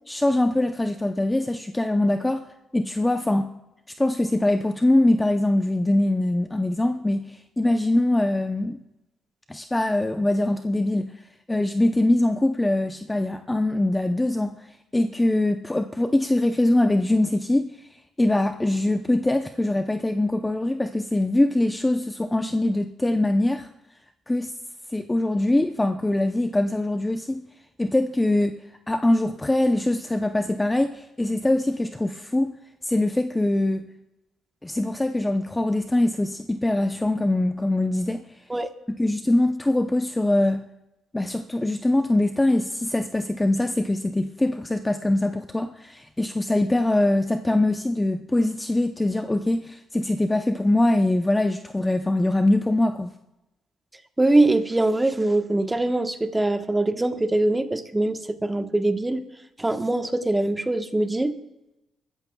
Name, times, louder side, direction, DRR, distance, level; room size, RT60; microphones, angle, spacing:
voice 1, 0.1-2.5 2.7-3.5 4.0-8.8 9.5-11.1 11.5-14.5 14.9-17.7 18.2-23.7 24.3-24.5 24.9-27.4 27.8-28.6 28.9-32.5 32.8-33.9 34.6-38.2 39.0-40.6 41.1-53.1, left 1 dB, 15° left, 7 dB, 0.6 m, -23 dB
voice 2, 54.2-59.2 59.6-61.3, right 2 dB, 15° right, 7 dB, 1.1 m, -22 dB
22.5 x 14.0 x 2.3 m, 0.93 s
cardioid pair, 90°, 0 cm